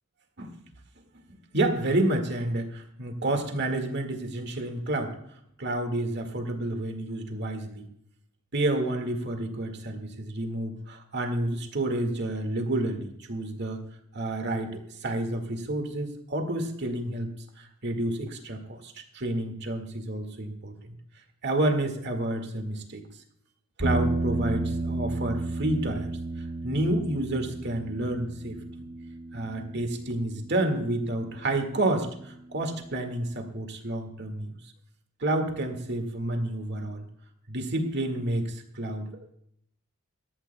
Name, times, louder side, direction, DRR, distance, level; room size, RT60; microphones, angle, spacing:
voice 1, 1.5-5.2 5.6-7.9 8.5-13.8 14.1-17.3 17.6-20.7 21.4-23.0 23.8-26.1 26.6-28.6 29.3-34.5 35.2-37.1 37.5-39.1, right 1 dB, 50° right, 5 dB, 1.8 m, -29 dB
sound 1, 23.8-32.1, right 2 dB, 85° right, 4.8 m, -33 dB
18.5 x 13.0 x 2.2 m, 0.71 s
head